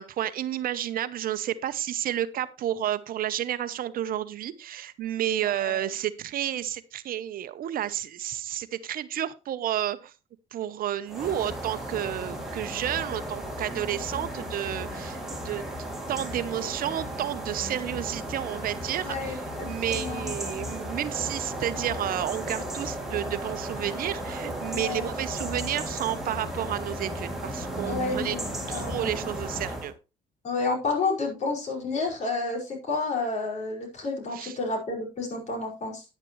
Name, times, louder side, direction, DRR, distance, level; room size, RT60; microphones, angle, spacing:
voice 1, 0.0-10.1 10.5-15.7 16.1-28.4 28.7-29.9 34.3-34.6, right 11 dB, 60° right, 13 dB, 0.8 m, -31 dB
voice 2, 5.4-5.8 19.0-19.4 19.9-20.3 24.7-25.2 27.8-29.3 30.4-36.0, left 3 dB, 45° left, -1 dB, 5.2 m, -30 dB
sound 1, 11.1-29.9, right 1 dB, ahead, 3.4 m, -35 dB
10.5 x 9.7 x 3.1 m, 0.29 s
cardioid pair, 110°, 17 cm